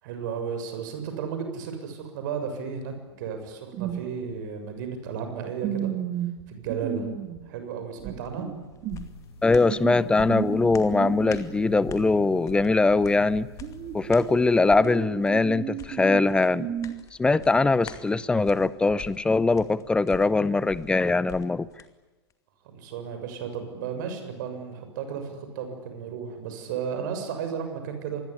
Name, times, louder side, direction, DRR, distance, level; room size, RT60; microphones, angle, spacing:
voice 1, 0.0-5.9 6.5-7.1 7.4-8.5 22.6-28.2, right 6 dB, 45° right, 7 dB, 7.0 m, -34 dB
sound 1, 3.7-4.0 4.3-4.4 5.6-7.4 8.0-9.1 9.7-13.0 13.3-16.9, right 10 dB, 30° right, 2.6 m, -34 dB
sound 2, 8.2-21.9 22.3-22.4, left 8 dB, 25° left, 2.3 m, -47 dB
sound 3, 8.9-14.7, left 3 dB, 65° left, 6.8 m, -46 dB
voice 2, 9.4-13.5 13.9-16.7 17.2-21.7, left 3 dB, 5° left, 20 dB, 0.8 m, -22 dB
27.0 x 21.0 x 9.9 m, 1.2 s
figure-of-eight pair, 105°, 14 cm